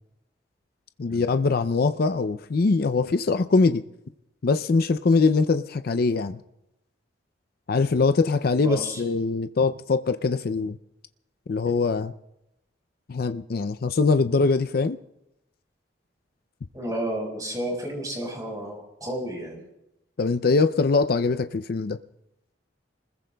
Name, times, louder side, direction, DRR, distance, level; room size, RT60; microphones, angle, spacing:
voice 1, 1.0-3.8 4.4-6.4 7.7-10.8 11.5-12.1 13.1-15.0 20.2-22.0, left 4 dB, 55° left, 0.5 m, -22 dB
voice 2, 8.6-9.0 11.6-11.7 16.7-19.6, right 1 dB, 20° right, 4.8 m, -32 dB
29.5 x 21.0 x 2.3 m
head